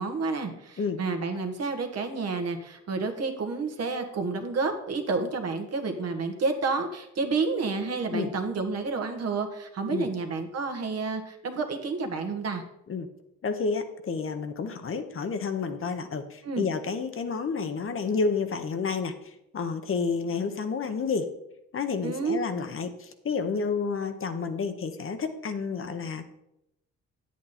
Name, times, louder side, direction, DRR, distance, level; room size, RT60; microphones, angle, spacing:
voice 1, 0.0-12.6 16.4-16.7 22.0-22.4, right 4 dB, 55° right, 5 dB, 1.6 m, -30 dB
voice 2, 13.4-21.3 21.7-26.3, left 5 dB, 45° left, 7 dB, 1.1 m, -30 dB
9.4 x 8.4 x 4.3 m, 0.83 s
cardioid pair, 90°, 30 cm